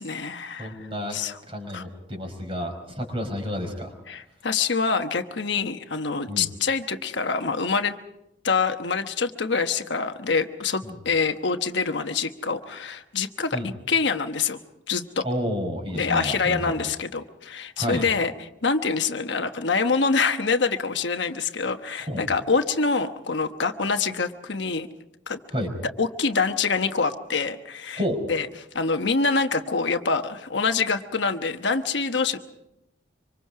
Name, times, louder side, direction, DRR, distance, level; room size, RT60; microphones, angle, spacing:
voice 1, 0.0-0.8 1.1-1.4 1.7-1.8 4.1-7.9 8.4-14.6 14.9-15.2 15.9-24.9 25.3-25.4 26.0-28.0 28.3-28.5 28.7-32.4, left 4 dB, 70° left, 7 dB, 1.1 m, -25 dB
voice 2, 0.6-1.2 1.5-3.9 6.3-6.5 10.9-11.0 13.5-13.7 15.2-16.8 17.8-18.1 22.1-22.3 25.5-25.7 28.0-28.3, equal, 30° right, 4 dB, 4.9 m, -30 dB
25.5 x 25.5 x 4.8 m, 0.84 s
head